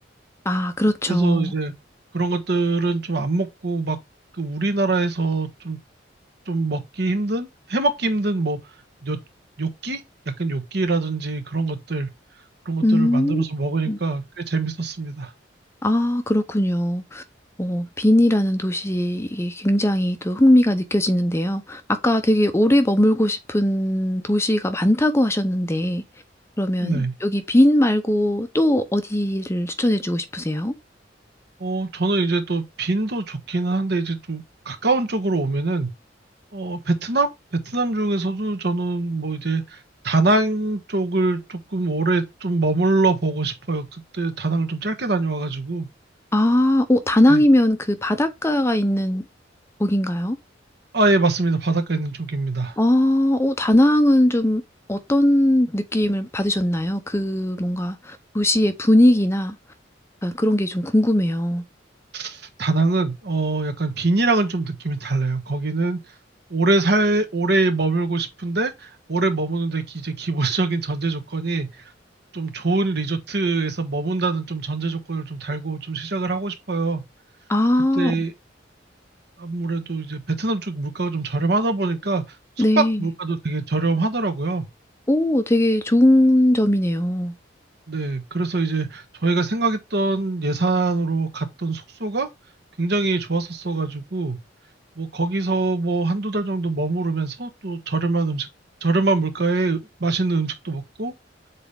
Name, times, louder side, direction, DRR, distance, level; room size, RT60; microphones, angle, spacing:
voice 1, 0.5-1.5 12.8-13.4 13.9-14.0 15.8-17.2 17.6-26.0 26.6-30.7 46.3-49.2 49.8-50.4 52.8-54.6 54.9-59.6 60.2-61.6 77.5-78.2 82.6-83.1 85.1-87.3, left 1 dB, 15° left, 0.6 m, -20 dB
voice 2, 1.1-1.7 2.1-4.0 4.4-5.8 6.5-8.6 9.0-9.2 9.6-10.0 10.3-12.1 12.6-15.3 26.8-27.1 31.6-35.9 36.5-39.8 40.0-45.9 47.3-47.4 50.9-52.8 62.1-66.0 66.5-71.7 72.3-77.0 77.9-78.3 79.4-82.2 82.8-84.7 87.9-92.3 92.8-94.4 95.0-98.5 98.8-101.1, right 3 dB, 60° right, 1.2 m, -24 dB
7.1 x 4.2 x 3.4 m
head